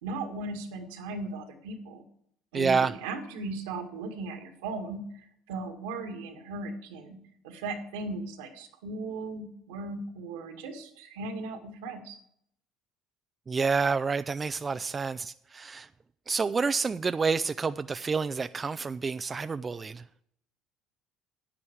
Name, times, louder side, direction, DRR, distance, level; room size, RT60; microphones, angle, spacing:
voice 1, 0.0-2.0 2.5-7.2 7.4-12.2, right 3 dB, 85° right, 2.0 m, -37 dB
voice 2, 2.5-2.9 13.5-15.9 16.3-20.0, right 5 dB, 30° right, 0.4 m, -28 dB
9.9 x 9.9 x 4.7 m
hypercardioid pair, 70°, 0 cm